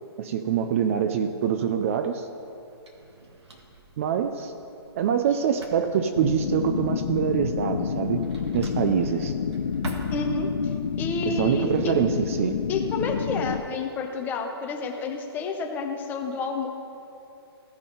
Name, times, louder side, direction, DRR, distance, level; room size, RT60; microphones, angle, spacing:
voice 1, 0.2-2.3 4.0-4.5 5.0-8.2 8.5-9.3 11.3-12.6, right 8 dB, 30° right, 8 dB, 0.4 m, -25 dB
Drawer open or close, 1.8-10.8, right 2 dB, 85° right, 1.7 m, -44 dB
sound 1, 6.2-13.6, left 7 dB, 85° left, 0.5 m, -29 dB
voice 2, 10.1-11.9 12.7-16.7, left 3 dB, 15° left, 3 dB, 0.6 m, -30 dB
16.0 x 5.5 x 3.9 m, 2.8 s
hypercardioid pair, 155°, 14 cm